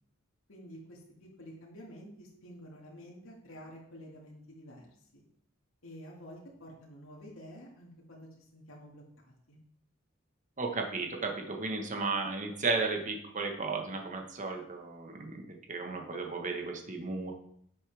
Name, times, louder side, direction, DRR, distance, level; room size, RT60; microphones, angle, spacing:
voice 1, 0.5-4.9 5.8-9.6, equal, 80° left, -3 dB, 2.2 m, -50 dB
voice 2, 10.6-15.4 15.7-17.3, right 3 dB, 40° right, 3 dB, 1.3 m, -34 dB
11.0 x 7.0 x 3.5 m, 0.69 s
head